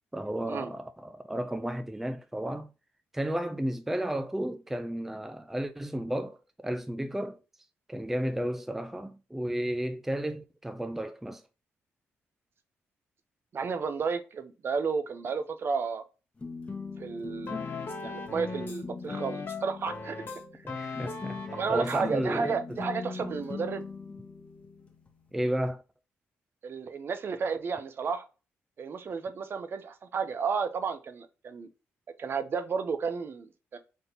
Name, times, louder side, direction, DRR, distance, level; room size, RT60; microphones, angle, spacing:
voice 1, 0.1-2.7 3.1-6.4 6.6-7.4 7.9-11.4 20.7-22.8 25.3-25.8, right 1 dB, 5° right, 0.4 m, -33 dB
voice 2, 13.5-16.0 17.0-17.6 18.0-20.2 20.5-20.6 21.5-23.8 26.6-28.3 28.8-31.7 32.2-33.8, right 5 dB, 50° right, 0.7 m, -32 dB
sound 1, 16.4-25.7, left 4 dB, 25° left, 1.1 m, -41 dB
sound 2, 17.5-18.8 19.1-22.0 22.3-22.5, left 4 dB, 45° left, 1.2 m, -39 dB
3.7 x 2.8 x 4.0 m
cardioid pair, 80°, 5 cm